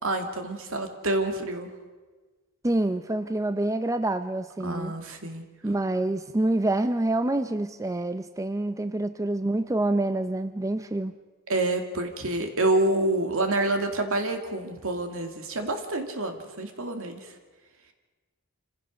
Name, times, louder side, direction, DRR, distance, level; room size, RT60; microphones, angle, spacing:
voice 1, 0.0-1.7 4.6-5.7 11.5-17.4, right 2 dB, 65° right, 6 dB, 2.4 m, -28 dB
voice 2, 2.6-4.9 5.6-11.1, right 2 dB, 15° right, 10 dB, 0.5 m, -27 dB
27.0 x 16.0 x 6.4 m, 1.3 s
head